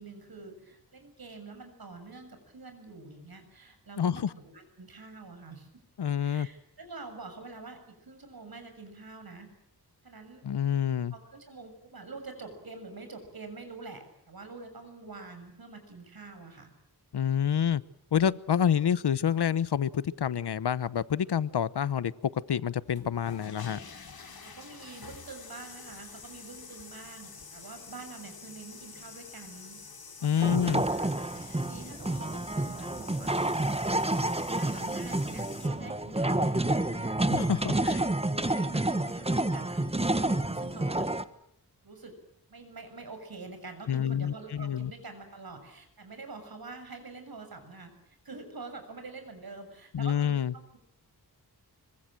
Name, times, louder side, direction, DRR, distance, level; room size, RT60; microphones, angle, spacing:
voice 1, 0.0-5.8 6.2-9.6 10.0-10.5 11.1-16.7 24.4-29.8 30.2-33.7 34.5-37.2 37.6-41.1 41.8-42.2 42.5-50.8, right 3 dB, 65° right, 7 dB, 7.2 m, -46 dB
voice 2, 4.0-4.3 6.0-6.5 10.4-11.1 17.1-17.8 18.1-23.8 30.2-30.8 37.3-38.0 43.9-44.9 49.9-50.5, left 8 dB, 85° left, 17 dB, 1.0 m, -28 dB
sound 1, 22.8-35.7, left 5 dB, 65° left, 4.1 m, -47 dB
sound 2, 30.4-41.2, right 1 dB, 15° right, 1.4 m, -29 dB
25.5 x 24.5 x 7.7 m, 0.72 s
wide cardioid pair, 80°, 39 cm